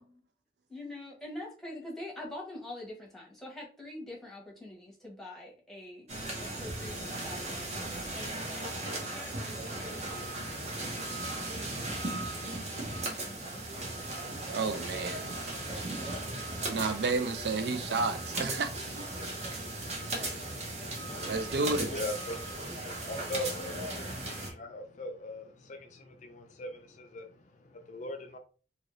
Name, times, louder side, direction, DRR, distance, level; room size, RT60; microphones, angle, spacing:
voice 1, 0.7-6.1 6.4-10.2 13.0-13.6, left 1 dB, ahead, 0.9 m, -45 dB
sound 1, 6.1-24.5, right 2 dB, 35° right, 0.7 m, -37 dB
voice 2, 14.5-15.2 16.7-19.0 20.1-20.4 21.2-21.9, right 3 dB, 65° right, 0.4 m, -31 dB
voice 3, 20.9-21.2 21.7-22.4 23.1-28.4, left 1 dB, 40° left, 0.4 m, -40 dB
2.8 x 2.5 x 3.0 m
head